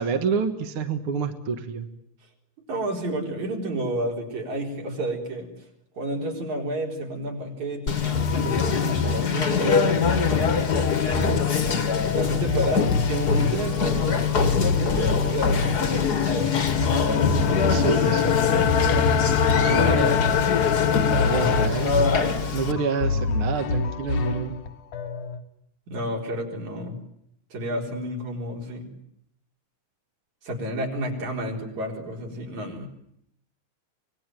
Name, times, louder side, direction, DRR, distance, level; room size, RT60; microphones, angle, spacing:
voice 1, 0.0-1.9 11.1-11.4 17.7-18.4 19.5-20.2 20.7-20.8 21.1-22.0 22.5-24.6, right 5 dB, 50° right, 6 dB, 2.0 m, -28 dB
voice 2, 2.7-5.5 5.9-10.2 12.2-16.7 25.9-27.0 27.5-28.9 30.4-32.9, right 1 dB, 65° right, 1 dB, 5.4 m, -30 dB
Conversation, 7.9-22.7, left 6 dB, 40° left, 1.8 m, -24 dB
sound 1, 8.1-25.4, left 2 dB, 75° left, 3.0 m, -29 dB
sound 2, 15.8-21.7, left 7 dB, 55° left, 2.1 m, -24 dB
25.5 x 20.5 x 9.1 m, 0.73 s
omnidirectional pair, 3.5 m